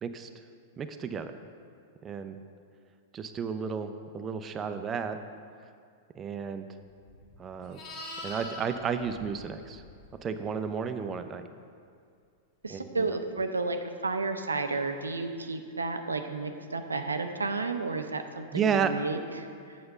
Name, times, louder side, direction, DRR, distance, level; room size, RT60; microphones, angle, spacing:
voice 1, 0.8-1.3 2.0-2.4 3.1-5.2 6.2-6.7 7.4-7.8 8.2-9.8 10.2-11.5 12.7-13.2 18.5-18.9, right 6 dB, 25° right, 8 dB, 0.5 m, -32 dB
Livestock farm animals working animals, 7.0-10.3 14.7-14.9, left 1 dB, 40° left, 2.0 m, -44 dB
voice 2, 12.6-19.8, right 3 dB, 80° right, 7 dB, 0.5 m, -32 dB
7.8 x 6.6 x 5.3 m, 2.2 s
figure-of-eight pair, 95°, 0 cm